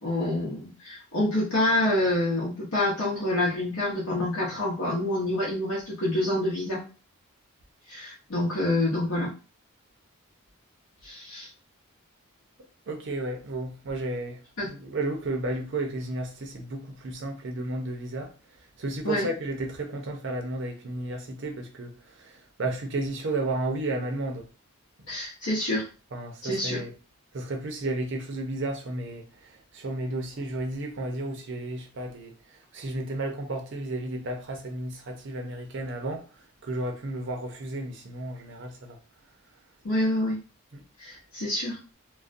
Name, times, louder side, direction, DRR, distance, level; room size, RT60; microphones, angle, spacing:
voice 1, 0.0-6.8 7.9-9.3 11.0-11.5 14.6-14.7 19.0-19.3 25.1-25.9 26.4-26.8 39.8-40.4 41.0-41.8, left 1 dB, 75° left, 0.8 m, -27 dB
voice 2, 12.9-18.3 18.8-21.9 22.2-24.4 26.1-26.9 27.3-29.2 29.7-32.3 32.7-36.2 36.6-39.0 40.7-40.8, right 2 dB, 55° right, 0.5 m, -32 dB
2.3 x 2.1 x 2.5 m
head